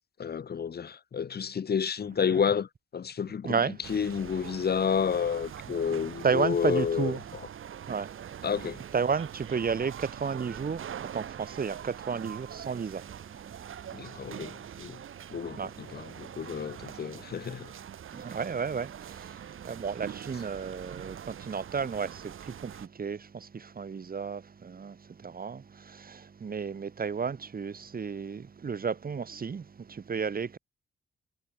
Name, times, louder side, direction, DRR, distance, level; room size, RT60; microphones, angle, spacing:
voice 1, 0.2-2.7 2.9-3.5 3.9-7.1 8.4-8.8 13.9-14.5 14.8-15.0 15.3-15.6 15.9-17.7, left 7 dB, 50° left, 1.5 m, -30 dB
voice 2, 3.4-3.9 6.2-7.2 7.9-14.8 15.5-17.0 17.8-30.6, right 6 dB, 45° right, 4.8 m, -33 dB
sound 1, 3.8-22.9, right 9 dB, 80° right, 5.8 m, -43 dB
wide cardioid pair, 120°, 21 cm